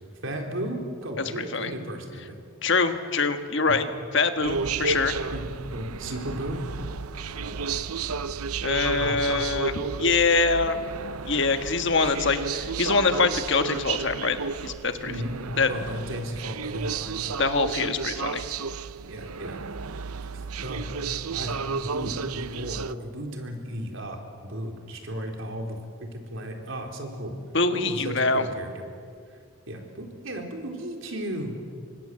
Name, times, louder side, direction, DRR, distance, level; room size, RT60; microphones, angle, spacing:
voice 1, 0.2-2.4 3.7-3.8 4.6-4.7 5.3-5.4 5.7-6.6 7.4-7.8 8.9-9.3 15.0-15.4 15.7-17.3 19.1-19.6 20.3-20.9 21.3-27.4 27.7-28.8 29.7-31.5, right 1 dB, 60° right, 3 dB, 4.1 m, -35 dB
voice 2, 1.3-1.7 2.6-3.9 4.1-5.1 8.6-9.7 10.0-10.8 11.2-14.4 14.6-15.1 15.6-15.7 17.4-18.4 27.5-28.4, left 4 dB, 55° left, 8 dB, 1.6 m, -24 dB
sound 1, 4.4-22.9, right 5 dB, 90° right, 0.7 m, -32 dB
29.0 x 25.0 x 7.8 m, 2.3 s
head